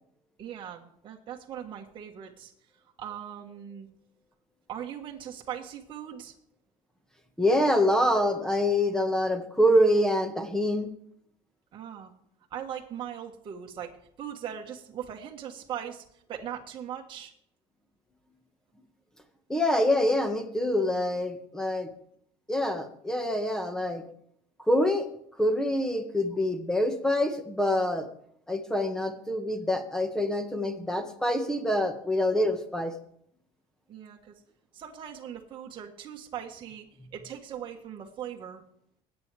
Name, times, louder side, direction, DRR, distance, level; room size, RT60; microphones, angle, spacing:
voice 1, 0.4-2.5 3.0-3.9 4.7-6.3 11.7-12.1 12.5-17.3 33.9-34.4 34.7-36.9 37.1-38.6, right 9 dB, 35° right, 0 dB, 1.5 m, -40 dB
voice 2, 7.4-10.9 19.5-21.9 22.5-24.0 24.7-25.1 25.4-28.1 28.5-32.9, left 1 dB, 5° left, 6 dB, 1.7 m, -25 dB
21.5 x 9.2 x 3.5 m, 0.69 s
cardioid pair, 135°, 14 cm